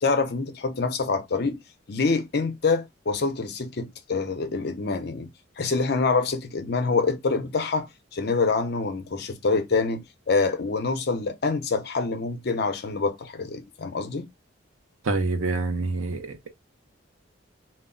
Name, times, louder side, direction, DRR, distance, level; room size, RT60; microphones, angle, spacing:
voice 1, 0.0-1.6 1.9-5.3 5.6-14.3, left 4 dB, 50° left, 0.5 m, -26 dB
voice 2, 15.0-16.5, right 3 dB, 90° right, 0.6 m, -27 dB
2.2 x 2.0 x 3.6 m
head